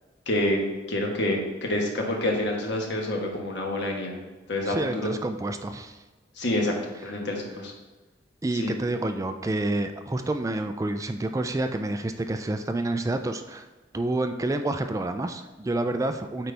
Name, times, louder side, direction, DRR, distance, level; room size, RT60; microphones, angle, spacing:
voice 1, 0.3-0.6 0.9-4.2 4.5-5.1 6.4-6.7 7.0-7.7 8.5-8.7, left 1 dB, 65° left, 0 dB, 1.3 m, -27 dB
voice 2, 4.7-6.0 8.4-13.6 13.9-16.5, right 2 dB, 20° right, 7 dB, 0.3 m, -28 dB
8.9 x 4.0 x 3.4 m, 1.2 s
head